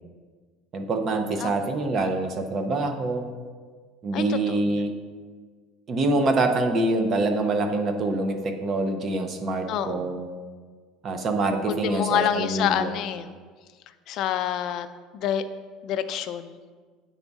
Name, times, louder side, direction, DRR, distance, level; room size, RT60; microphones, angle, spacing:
voice 1, 0.7-3.3 4.0-4.9 5.9-10.3 11.0-12.9, right 2 dB, 30° right, 6 dB, 0.6 m, -25 dB
voice 2, 4.1-4.8 9.7-10.1 11.7-13.3 14.1-14.9 15.1-15.4 15.8-16.6, left 9 dB, 45° left, 10 dB, 0.4 m, -27 dB
9.7 x 4.0 x 3.5 m, 1.5 s
cardioid pair, 150°, 0 cm